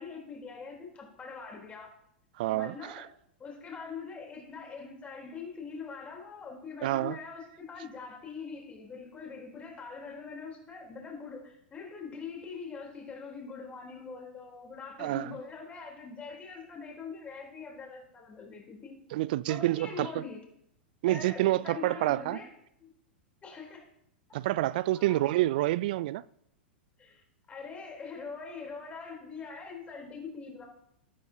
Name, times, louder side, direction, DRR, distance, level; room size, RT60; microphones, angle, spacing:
voice 1, 0.0-1.9 2.5-3.1 3.4-19.0 19.5-20.4 21.1-22.5 22.8-22.9 23.4-23.9 24.9-25.3 27.0-30.7, left 5 dB, 20° left, 3.7 m, -43 dB
voice 2, 2.4-3.1 6.8-7.2 15.0-15.3 19.1-20.2 21.0-22.4 24.3-26.2, right 16 dB, 55° right, 0.3 m, -28 dB
13.0 x 12.5 x 2.9 m
figure-of-eight pair, 95°, 6 cm